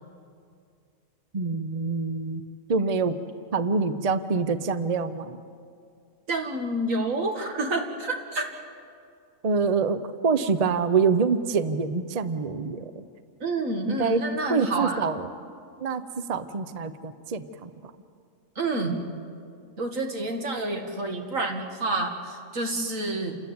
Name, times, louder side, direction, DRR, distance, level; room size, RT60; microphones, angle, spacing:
voice 1, 1.3-2.4 2.7-3.1 3.5-5.4 9.4-13.1 13.9-14.2 14.5-15.3 15.8-17.7, right 5 dB, 35° right, 12 dB, 0.7 m, -26 dB
voice 2, 6.3-8.5 13.4-15.1 18.6-19.0 19.8-23.4, right 2 dB, 80° right, 3 dB, 2.4 m, -28 dB
28.5 x 14.0 x 9.5 m, 2.3 s
omnidirectional pair, 1.4 m